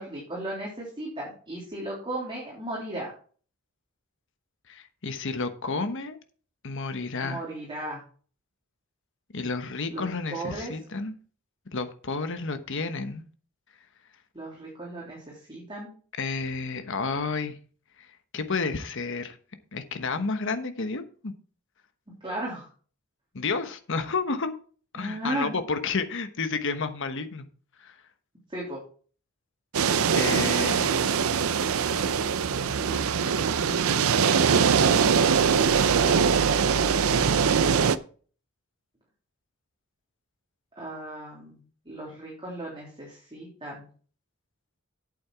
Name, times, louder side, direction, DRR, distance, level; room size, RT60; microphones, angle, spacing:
voice 1, 0.0-3.1 7.2-8.0 9.9-10.7 14.3-15.9 22.2-22.7 25.0-25.6 28.5-28.8 35.9-37.3 40.8-41.6 41.8-43.9, right 1 dB, 25° right, 3.2 m, -37 dB
voice 2, 4.7-6.2 6.6-7.4 9.3-11.1 11.7-13.2 16.2-17.6 18.3-19.4 19.7-21.3 23.3-24.5 24.9-27.5 27.8-27.9 30.2-31.0, left 4 dB, 60° left, 1.2 m, -31 dB
sound 1, 29.7-38.0, right 6 dB, 90° right, 0.6 m, -22 dB
8.7 x 7.7 x 4.6 m
head